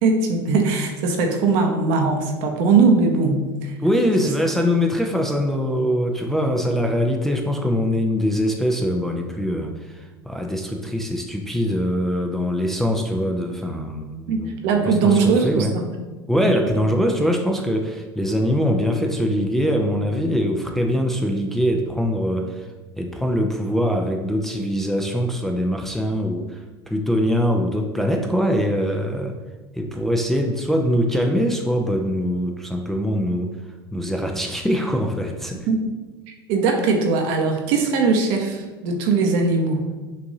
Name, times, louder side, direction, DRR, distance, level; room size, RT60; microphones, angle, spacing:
voice 1, 0.0-3.7 4.2-4.3 14.3-15.8 16.4-16.5 35.7-35.9 36.5-39.9, right 4 dB, 55° right, 3 dB, 0.8 m, -20 dB
voice 2, 3.8-14.5 14.9-15.7 16.3-22.7 23.0-29.4 29.7-33.6 33.9-35.6, equal, ahead, 2 dB, 0.4 m, -23 dB
6.3 x 2.6 x 2.7 m, 1.2 s
figure-of-eight pair, 80°, 13 cm